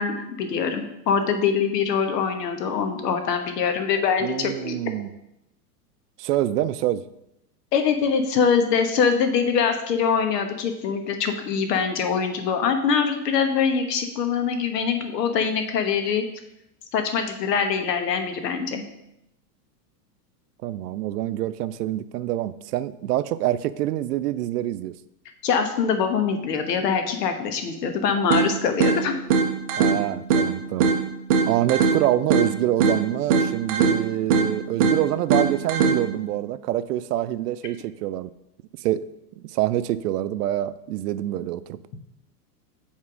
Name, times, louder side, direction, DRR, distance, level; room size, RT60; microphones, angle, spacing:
voice 1, 0.0-4.8 7.7-16.2 16.9-18.8 25.4-29.1, left 6 dB, 90° left, 7 dB, 1.3 m, -23 dB
voice 2, 4.2-5.1 6.2-7.0 20.6-24.9 29.8-30.9 31.5-38.3 38.8-39.0 39.4-41.8, right 13 dB, 75° right, 15 dB, 0.6 m, -26 dB
sound 1, 28.3-36.3, right 5 dB, 25° right, 0.4 m, -23 dB
7.4 x 3.6 x 6.1 m, 0.85 s
supercardioid pair, 165°, 47 cm